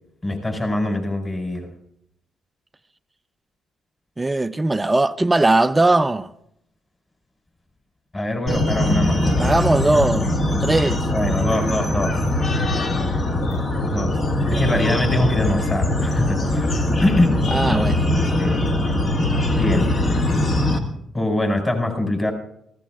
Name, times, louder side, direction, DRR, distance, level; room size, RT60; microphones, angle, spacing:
voice 1, 0.2-1.7 8.1-9.7 11.1-12.2 13.9-14.2 14.5-17.4 18.2-18.5 19.6-19.9 21.1-22.3, left 1 dB, 25° left, 4.5 m, -23 dB
voice 2, 4.2-6.3 9.4-11.0 14.5-14.9 17.5-18.0, right 2 dB, 15° right, 0.5 m, -20 dB
sound 1, 8.5-20.8, left 1 dB, 45° left, 1.8 m, -21 dB
24.0 x 15.5 x 2.4 m
cardioid pair, 90°, 0 cm